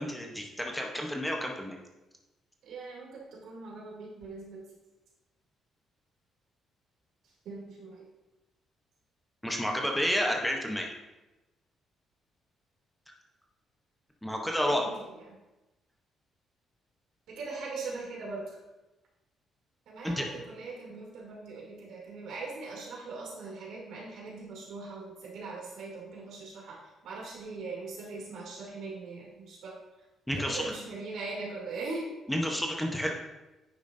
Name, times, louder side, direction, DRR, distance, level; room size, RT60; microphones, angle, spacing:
voice 1, 0.0-1.8 9.4-10.9 14.2-14.8 20.0-20.3 30.3-30.6 32.3-33.1, equal, 5° left, 1 dB, 0.8 m, -30 dB
voice 2, 2.6-4.6 7.4-8.1 14.7-15.4 17.3-18.6 19.9-26.8 27.0-29.8 30.3-32.1, right 3 dB, 75° right, -4 dB, 2.7 m, -41 dB
9.6 x 6.9 x 2.6 m, 1.1 s
cardioid pair, 130°, 0 cm